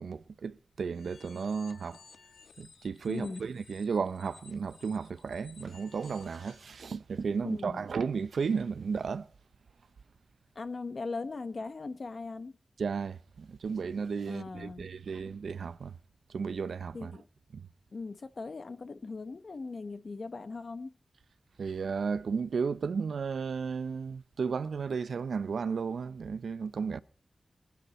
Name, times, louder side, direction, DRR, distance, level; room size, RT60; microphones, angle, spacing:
voice 1, 0.0-2.0 2.6-9.3 12.8-15.9 16.3-17.1 17.5-17.7 21.6-27.0, right 5 dB, 85° right, 0.6 m, -34 dB
sound 1, 0.9-6.7, left 5 dB, 85° left, 1.4 m, -57 dB
voice 2, 3.1-3.4 7.4-7.8 10.5-12.6 14.3-14.9 16.9-17.3 17.9-20.9, left 3 dB, 50° left, 1.1 m, -39 dB
24.0 x 9.5 x 4.2 m
wide cardioid pair, 125°, 0 cm